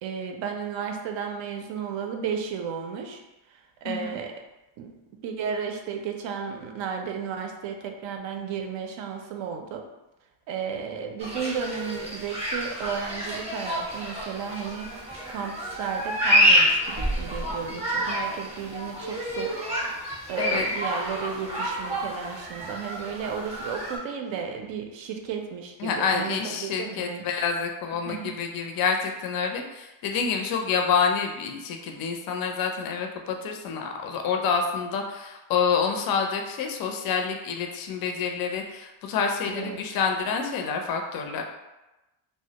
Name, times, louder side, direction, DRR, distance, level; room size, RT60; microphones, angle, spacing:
voice 1, 0.0-3.2 3.5-4.4 4.8-4.9 5.2-9.9 10.5-15.0 15.3-19.6 20.3-27.3 28.0-28.4 39.5-39.8, right 6 dB, 65° right, 4 dB, 0.5 m, -33 dB
voice 2, 3.8-4.2 20.4-20.6 25.8-41.4, left 6 dB, 45° left, 3 dB, 0.4 m, -28 dB
sound 1, 11.2-24.0, equal, 15° right, 0.7 m, -28 dB
2.2 x 2.1 x 2.8 m, 1.0 s
cardioid pair, 90°, 50 cm